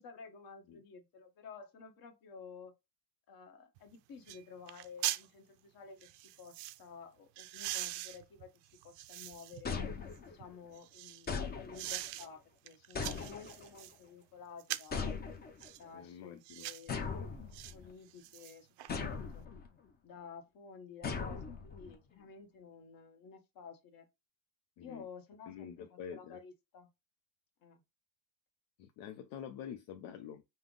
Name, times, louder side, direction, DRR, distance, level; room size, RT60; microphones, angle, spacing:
voice 1, 0.0-2.7 3.3-6.1 6.4-8.5 8.8-9.8 10.2-15.1 15.8-17.0 17.7-18.7 19.0-19.5 20.0-24.1 24.8-26.9 27.6-27.8, left 5 dB, 50° left, 1.2 m, -52 dB
sound 1, 3.8-3.9 4.3-4.4 4.7-5.3 6.0-6.8 7.4-9.6 10.1-11.3 11.7-12.3 12.7-14.0 14.6-15.0 15.6-15.8 16.4-16.9 17.5-17.7 18.1-18.9 19.3-19.4, right 15 dB, 70° right, 0.5 m, -42 dB
sound 2, 9.6-10.5 11.3-12.1 13.0-13.8 14.9-15.7 16.9-17.9 18.9-19.7 21.0-22.0, left 5 dB, 20° left, 0.5 m, -39 dB
voice 2, 15.9-16.7 24.8-25.0 25.5-26.4 28.8-30.4, left 8 dB, 70° left, 0.6 m, -47 dB
5.5 x 2.0 x 3.7 m
cardioid pair, 150°, 43 cm